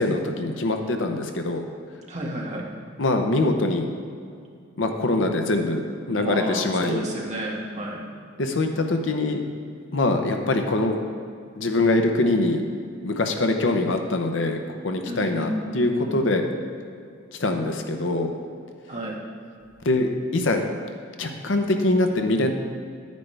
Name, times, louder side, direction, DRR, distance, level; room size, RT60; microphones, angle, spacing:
voice 1, 0.0-1.6 3.0-3.9 4.8-7.0 8.4-9.4 9.9-11.0 11.6-12.6 13.0-14.6 14.8-16.5 17.3-18.3 19.8-20.6 21.2-22.5, left 2 dB, 70° left, 5 dB, 0.8 m, -23 dB
voice 2, 2.1-2.6 6.1-8.0 15.1-16.2 18.9-19.2, right 1 dB, 40° right, -4 dB, 1.8 m, -31 dB
10.5 x 9.4 x 3.4 m, 2.4 s
head